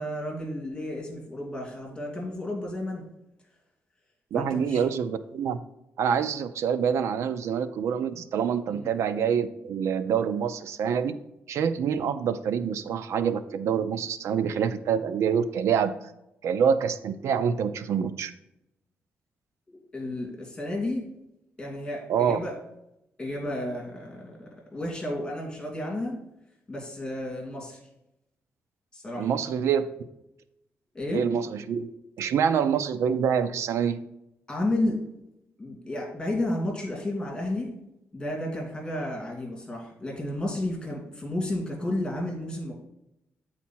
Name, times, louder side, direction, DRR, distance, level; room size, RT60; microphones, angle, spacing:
voice 1, 0.0-3.0 4.3-4.8 8.7-8.9 19.7-21.0 21.6-22.6 23.2-26.2 26.7-27.8 28.9-29.3 30.9-31.2 34.5-34.9 35.6-37.7 38.1-42.7, left 1 dB, 15° left, -1 dB, 2.6 m, -32 dB
voice 2, 4.3-5.6 6.0-11.2 11.5-16.0 16.4-18.3 22.1-22.4 29.1-29.9 31.1-31.9 32.2-34.0, right 7 dB, 80° right, 12 dB, 0.5 m, -26 dB
8.4 x 4.3 x 4.4 m, 0.86 s
cardioid pair, 125°, 5 cm